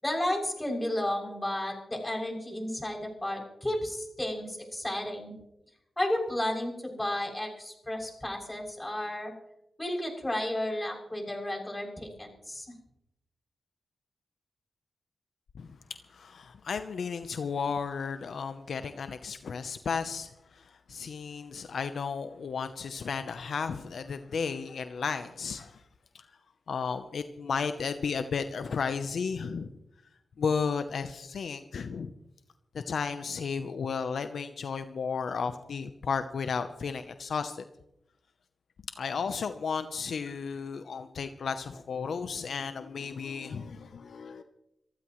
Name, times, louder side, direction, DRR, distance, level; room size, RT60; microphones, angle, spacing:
voice 1, 0.0-5.3 6.0-9.3 9.8-12.7, left 1 dB, 15° left, 1 dB, 7.1 m, -32 dB
voice 2, 16.1-25.8 26.1-26.3 26.7-29.7 30.4-32.1 32.7-37.6 39.0-44.4, left 5 dB, 75° left, 9 dB, 0.8 m, -33 dB
27.0 x 14.5 x 3.2 m, 0.87 s
cardioid pair, 50°, 0 cm